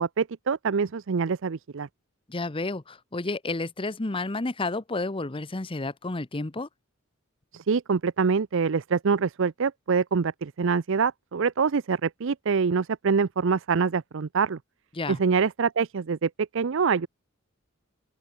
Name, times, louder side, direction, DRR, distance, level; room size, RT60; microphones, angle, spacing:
voice 1, 0.0-1.9 7.5-14.6 15.1-17.1, right 5 dB, 65° right, 0.5 m, -25 dB
voice 2, 2.3-6.7 14.9-15.2, left 2 dB, 25° left, 0.8 m, -31 dB
open air
head